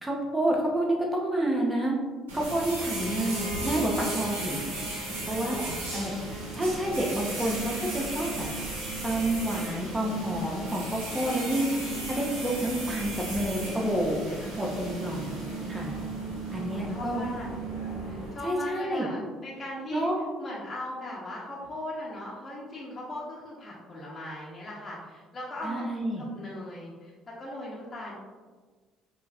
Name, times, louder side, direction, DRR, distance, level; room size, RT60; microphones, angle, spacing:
voice 1, 0.0-1.9 2.3-4.6 5.3-5.6 5.9-6.1 6.5-8.5 9.0-11.7 12.1-14.2 14.6-15.3 15.7-15.9 16.5-17.2 18.4-19.1 19.9-20.2 25.6-26.2, right 1 dB, 15° right, -1 dB, 0.9 m, -29 dB
sound 1, 2.3-18.3, right 2 dB, 85° right, 1.1 m, -35 dB
Bowed string instrument, 2.8-7.5, equal, 70° left, 0.9 m, -41 dB
voice 2, 5.3-6.0 14.3-14.7 16.7-17.5 18.1-20.1 20.4-28.2, left 1 dB, 35° left, -6 dB, 1.0 m, -39 dB
5.5 x 2.7 x 2.4 m, 1.4 s
hypercardioid pair, 55°, 0 cm